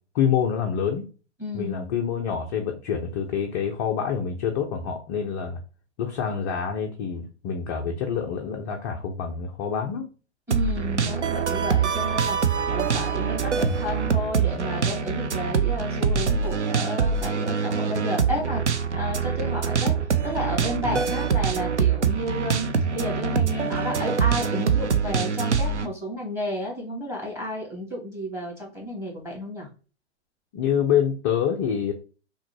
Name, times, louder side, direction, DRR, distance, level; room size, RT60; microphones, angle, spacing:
voice 1, 0.1-1.1 1.5-5.6 6.0-10.1 20.8-21.0 30.5-31.9, left 8 dB, 20° left, 1 dB, 0.3 m, -26 dB
voice 2, 1.4-1.9 10.5-19.9 20.2-29.7, equal, 10° right, -1 dB, 1.8 m, -32 dB
sound 1, 10.5-25.9, right 6 dB, 80° right, 0.6 m, -24 dB
5.8 x 2.2 x 2.8 m, 0.35 s
figure-of-eight pair, 105°, 34 cm